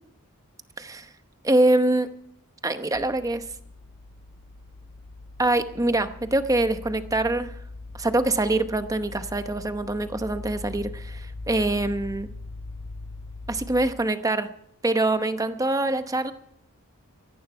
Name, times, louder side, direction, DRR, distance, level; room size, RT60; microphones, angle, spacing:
voice 1, 1.4-2.1 2.6-3.4 5.4-7.5 8.0-12.3 13.5-14.5 14.8-16.3, right 2 dB, 15° right, 9 dB, 0.9 m, -24 dB
sound 1, 2.9-13.9, left 2 dB, 55° left, 2.0 m, -41 dB
17.5 x 14.0 x 4.5 m, 0.70 s
head